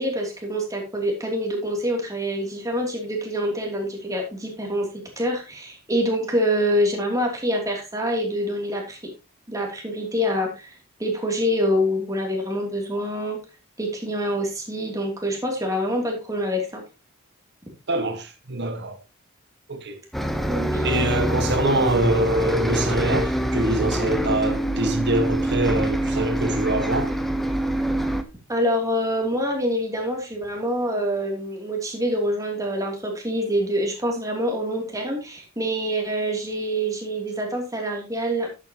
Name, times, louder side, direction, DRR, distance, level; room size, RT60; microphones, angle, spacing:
voice 1, 0.0-4.9 5.2-9.0 9.5-13.4 13.8-16.8 20.5-20.8 28.5-38.5, equal, 15° right, 3.0 m, -26 dB
voice 2, 17.9-19.0 19.7-20.0 20.8-27.1, right 1 dB, 55° right, 1.7 m, -24 dB
Bus, 20.1-28.2, right 1 dB, ahead, 0.9 m, -25 dB
11.0 x 8.6 x 3.0 m
head